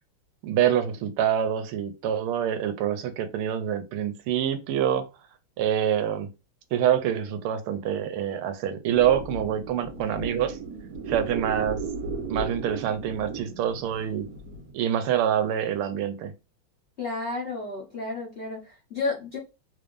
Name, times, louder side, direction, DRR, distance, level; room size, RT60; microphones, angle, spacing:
voice 1, 0.4-5.0 5.6-6.3 6.7-10.6 11.1-11.8 12.3-14.3 14.7-16.3, right 9 dB, 80° right, 1.5 m, -26 dB
sound 1, 8.9-14.7, right 4 dB, 50° right, 1.3 m, -35 dB
voice 2, 17.0-19.4, left 3 dB, 50° left, 0.8 m, -32 dB
3.5 x 3.3 x 2.5 m
omnidirectional pair, 2.4 m